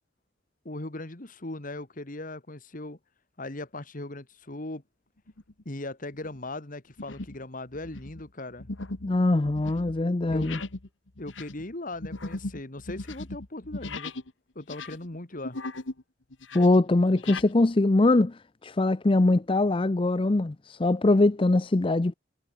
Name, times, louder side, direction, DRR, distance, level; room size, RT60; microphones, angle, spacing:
voice 1, 0.7-3.0 3.4-4.8 5.7-8.7 10.3-10.6 11.2-14.1 14.6-15.6, left 2 dB, 45° left, 1.8 m, -38 dB
sound 1, 5.3-5.6 6.1-6.4 7.0-7.4 7.7-14.3 14.6-16.0 16.3-17.5, left 2 dB, 75° left, 1.8 m, -38 dB
voice 2, 9.0-10.6 16.5-22.1, left 2 dB, 25° left, 0.5 m, -22 dB
head